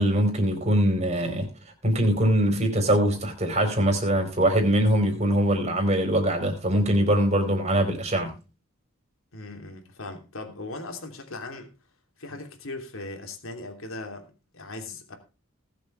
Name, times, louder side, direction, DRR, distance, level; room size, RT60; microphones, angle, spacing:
voice 1, 0.0-1.5 1.8-8.3, right 1 dB, 30° right, 4.4 m, -22 dB
voice 2, 9.3-11.7 12.2-14.3 14.5-15.2, left 2 dB, 75° left, 3.0 m, -38 dB
19.5 x 7.7 x 3.3 m
head